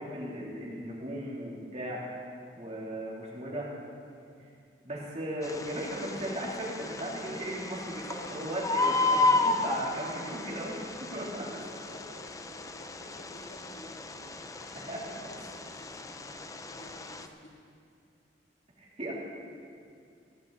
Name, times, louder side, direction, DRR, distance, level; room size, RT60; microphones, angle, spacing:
voice 1, 0.0-2.0 2.5-3.7 4.8-10.8 11.1-11.5 14.9-15.0 18.8-19.1, right 1 dB, 35° right, -4 dB, 3.0 m, -36 dB
Bird, 5.4-17.3, left 3 dB, 20° left, 0.5 m, -33 dB
voice 2, 11.5-14.3 14.6-17.5, left 1 dB, 90° left, -5 dB, 4.2 m, -52 dB
16.5 x 16.5 x 4.0 m, 2.4 s
head